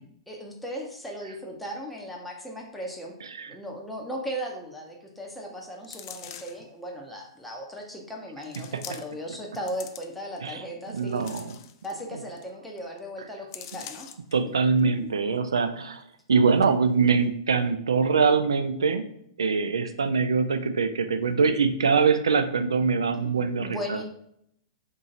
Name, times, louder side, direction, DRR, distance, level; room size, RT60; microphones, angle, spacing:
voice 1, 0.3-3.1 3.5-11.3 11.8-14.1 14.8-15.1 23.2-23.3 23.6-24.0, equal, 5° left, -2 dB, 0.6 m, -37 dB
sound 1, 5.8-6.7 7.4-7.5 8.4-9.3 9.5-10.4 10.9-12.0 12.4-12.5 12.8-13.0 13.5-14.3 14.8-14.9, left 10 dB, 45° left, 0.3 m, -44 dB
voice 2, 11.0-11.6 14.3-16.0 16.3-19.1 19.4-24.0, right 5 dB, 70° right, 9 dB, 0.4 m, -23 dB
2.9 x 2.7 x 3.7 m, 0.71 s
figure-of-eight pair, 110°, 3 cm